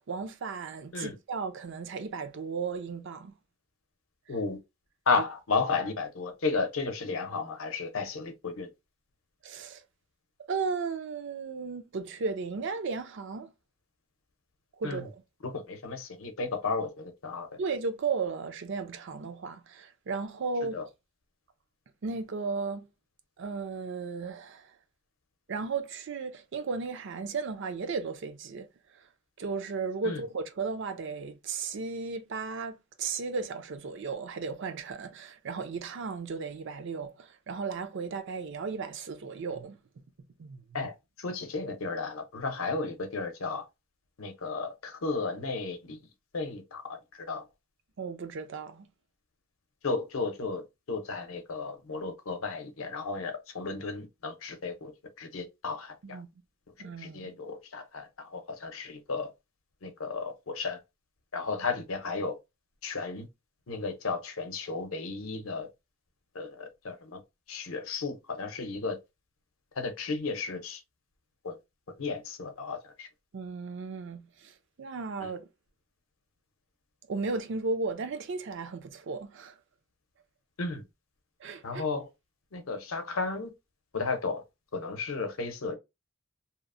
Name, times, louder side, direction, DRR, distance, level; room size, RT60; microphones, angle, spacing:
voice 1, 0.0-3.3 9.4-9.8 10.5-13.5 14.8-15.1 17.6-20.8 22.0-22.9 23.4-24.7 25.5-28.7 28.9-29.0 29.4-39.8 40.4-40.9 48.0-48.9 56.0-56.3 56.8-57.4 73.3-75.5 77.1-79.5 81.4-81.8, right 4 dB, 60° right, 0.4 m, -35 dB
voice 2, 5.1-8.7 14.8-15.1 15.4-17.5 20.7-20.9 30.0-30.2 40.7-43.6 44.2-46.0 46.3-47.4 49.8-54.9 55.2-56.2 57.0-59.3 59.8-60.8 61.3-62.4 62.8-63.3 63.7-65.7 66.3-67.2 67.5-69.0 69.8-70.8 71.4-71.5 72.0-73.1 75.2-75.3 80.6-80.8 81.6-82.1 82.5-83.5 83.9-84.4 84.7-85.8, left 4 dB, 70° left, 0.7 m, -33 dB
2.8 x 2.0 x 2.5 m
head